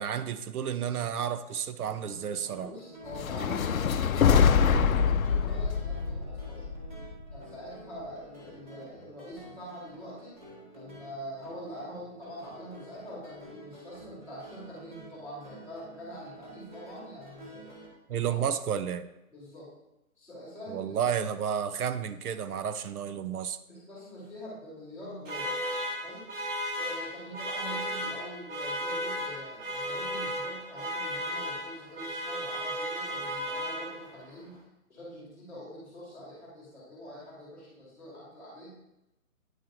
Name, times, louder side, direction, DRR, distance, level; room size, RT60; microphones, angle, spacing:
voice 1, 0.0-2.7 18.1-19.1 20.7-23.6, right 8 dB, 85° right, 12 dB, 0.6 m, -31 dB
sound 1, 2.0-17.9, right 1 dB, 35° right, 1.3 m, -50 dB
voice 2, 2.6-6.6 7.3-10.3 10.7-17.7 18.1-18.4 19.3-19.7 20.2-21.0 23.7-25.5 26.0-26.3 26.7-34.6 34.9-38.7, equal, 5° right, -15 dB, 1.2 m, -44 dB
sound 2, 3.1-7.4, left 6 dB, 70° left, 0.5 m, -25 dB
sound 3, 25.2-34.3, equal, 55° right, 1.5 m, -35 dB
9.1 x 3.1 x 3.7 m, 0.92 s
hypercardioid pair, 180°, 44 cm